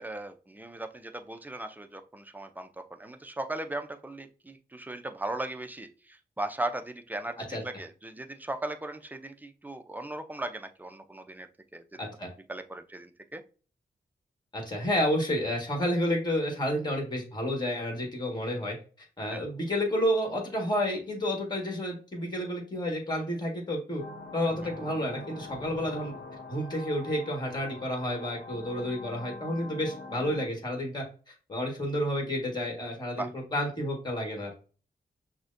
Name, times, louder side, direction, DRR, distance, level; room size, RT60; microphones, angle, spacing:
voice 1, 0.0-7.4 7.6-12.0 12.5-13.4 19.3-19.4 33.2-33.3, right 2 dB, 10° right, 7 dB, 0.5 m, -38 dB
voice 2, 12.0-12.3 14.5-24.0 24.3-26.1 26.5-31.0 31.5-34.5, equal, 25° left, 1 dB, 1.6 m, -30 dB
sound 1, 24.0-30.5, left 2 dB, 80° left, 0.9 m, -44 dB
6.0 x 2.2 x 2.6 m, 0.37 s
cardioid pair, 80°, 17 cm